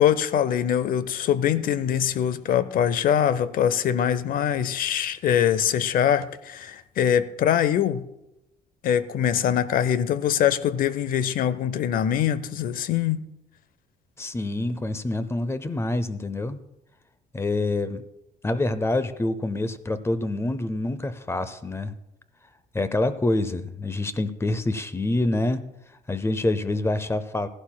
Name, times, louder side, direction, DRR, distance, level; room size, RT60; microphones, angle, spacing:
voice 1, 0.0-8.1 8.8-13.2, left 9 dB, 60° left, 0.6 m, -23 dB
voice 2, 14.2-16.6 17.3-18.0 18.4-22.0 22.7-25.7 26.1-27.5, left 2 dB, 15° left, 0.6 m, -26 dB
16.5 x 11.5 x 2.3 m
cardioid pair, 110°, 17 cm